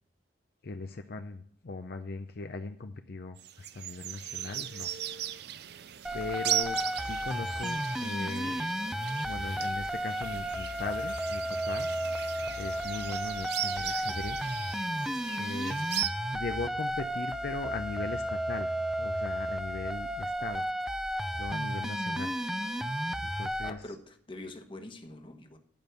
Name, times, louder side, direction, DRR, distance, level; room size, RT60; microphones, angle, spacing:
voice 1, 0.6-4.9 6.1-8.7 9.3-11.9 12.6-14.6 15.4-15.9 16.3-18.7 19.0-20.7 21.3-22.3 23.2-24.0, left 3 dB, 60° left, 6 dB, 0.6 m, -39 dB
sound 1, 3.4-16.1, right 11 dB, 60° right, 0.5 m, -38 dB
sound 2, 6.0-23.7, equal, 5° right, 0.5 m, -33 dB
voice 2, 23.6-25.6, left 2 dB, 30° left, 5 dB, 1.1 m, -44 dB
10.5 x 5.3 x 7.8 m, 0.63 s
head